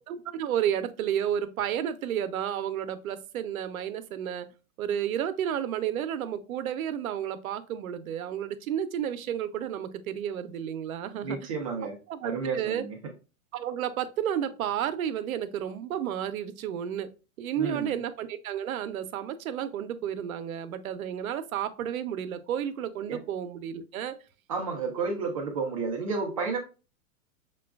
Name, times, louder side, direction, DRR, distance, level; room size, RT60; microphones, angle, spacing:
voice 1, 0.1-4.5 4.8-11.5 12.1-12.9 13.5-17.1 17.4-24.2, right 9 dB, 85° right, 11 dB, 0.6 m, -31 dB
voice 2, 11.2-12.0 12.2-12.9 17.6-18.0 23.1-23.2 24.5-26.6, right 4 dB, 25° right, 1 dB, 0.4 m, -31 dB
5.9 x 2.2 x 2.3 m, 0.32 s
hypercardioid pair, 155°, 41 cm